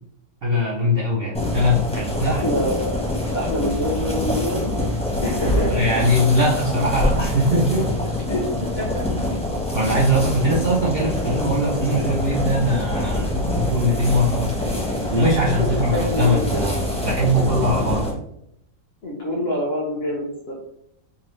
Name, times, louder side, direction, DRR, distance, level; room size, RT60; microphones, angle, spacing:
voice 1, 0.4-2.3 5.7-7.9 9.7-14.5 15.1-18.1, equal, 90° right, -4 dB, 0.5 m, -21 dB
sound 1, 1.3-18.1, left 1 dB, 5° left, 0.5 m, -25 dB
voice 2, 2.2-2.9 3.3-4.7 5.2-6.1 7.1-7.2 8.3-9.0 9.8-10.1 15.6-16.7 19.0-20.5, left 1 dB, 55° left, -2 dB, 0.7 m, -26 dB
4.9 x 2.0 x 3.1 m, 0.77 s
omnidirectional pair, 1.9 m